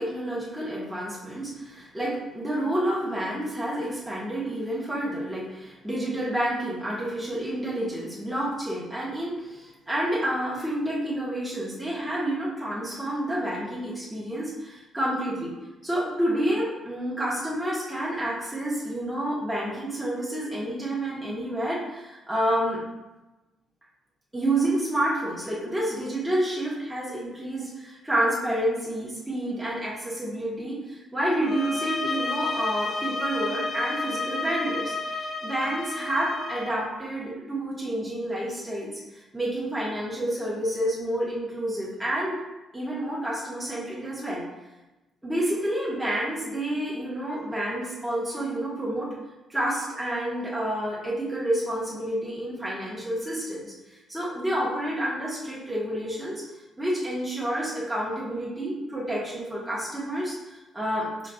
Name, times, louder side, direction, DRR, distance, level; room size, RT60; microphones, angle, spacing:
voice 1, 0.0-15.5 15.8-22.8 24.3-42.4 42.7-44.4 45.2-49.1 49.5-56.4 56.8-61.3, right 1 dB, 5° right, -8 dB, 1.2 m, -29 dB
sound 1, 31.4-36.8, left 3 dB, 40° left, 0.4 m, -31 dB
4.5 x 3.9 x 2.3 m, 1.1 s
cardioid pair, 90°, 0 cm